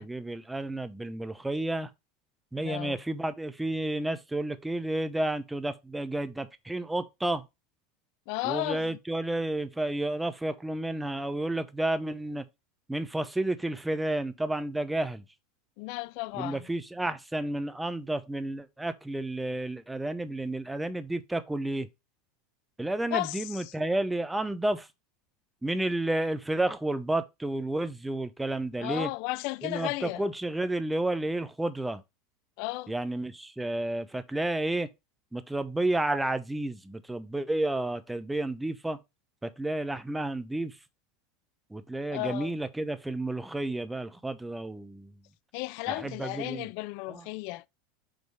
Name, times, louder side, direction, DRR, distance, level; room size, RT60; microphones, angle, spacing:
voice 1, 0.0-1.9 2.5-7.4 8.4-12.5 12.9-15.2 16.4-21.9 22.8-24.9 25.6-29.1 29.6-32.0 32.9-34.9 35.3-39.0 39.4-40.8 41.7-45.2 45.9-46.7 47.1-47.2, right 1 dB, 5° right, 0.8 m, -31 dB
voice 2, 2.6-3.0 8.3-9.0 15.8-16.7 23.1-23.7 28.8-30.2 32.6-32.9 42.1-42.5 45.5-47.7, left 21 dB, 65° left, 0.3 m, -34 dB
5.3 x 3.9 x 4.7 m
hypercardioid pair, 105°, 0 cm